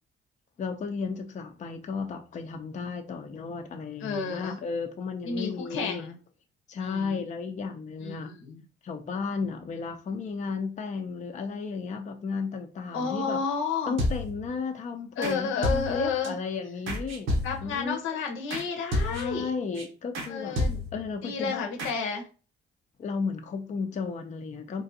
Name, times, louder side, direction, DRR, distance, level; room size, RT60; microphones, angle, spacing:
voice 1, 0.6-6.0 6.7-8.3 8.8-13.4 13.9-17.3 17.6-18.0 19.0-20.6 20.9-21.7 23.0-24.8, left 5 dB, 40° left, 5 dB, 0.5 m, -34 dB
voice 2, 4.0-4.6 5.2-6.1 6.8-7.2 8.0-8.6 12.9-13.9 15.2-16.4 17.4-19.5 20.3-20.8 21.2-22.3, left 5 dB, 85° left, 3 dB, 0.8 m, -31 dB
sound 1, 14.0-14.5 15.2-15.4 15.6-16.3 16.9-17.8 18.5-18.7 18.9-19.4 19.8-19.9 20.1-20.3 20.6-21.1 21.8-21.9, left 1 dB, 80° right, 0.9 m, -30 dB
3.7 x 2.4 x 2.6 m, 0.35 s
cardioid pair, 90°, 20 cm